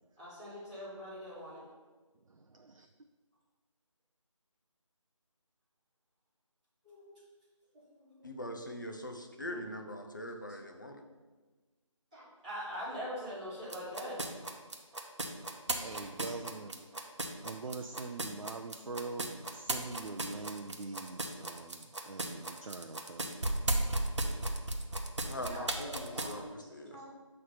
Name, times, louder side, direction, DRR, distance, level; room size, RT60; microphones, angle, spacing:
voice 1, 0.2-1.6 6.8-7.1 8.0-8.3 9.4-9.6 12.1-14.2 16.2-16.5 25.4-26.5 26.9-27.0, equal, 5° right, -15 dB, 2.1 m, -43 dB
voice 2, 2.3-2.9 15.7-16.7 17.4-23.3, right 3 dB, 80° right, 4 dB, 0.5 m, -43 dB
voice 3, 8.2-11.0 25.3-27.0, left 1 dB, 35° left, 3 dB, 0.6 m, -42 dB
sound 1, 13.7-26.3, right 2 dB, 60° right, 0.9 m, -35 dB
7.7 x 3.3 x 5.7 m, 1.3 s
figure-of-eight pair, 180°, 17 cm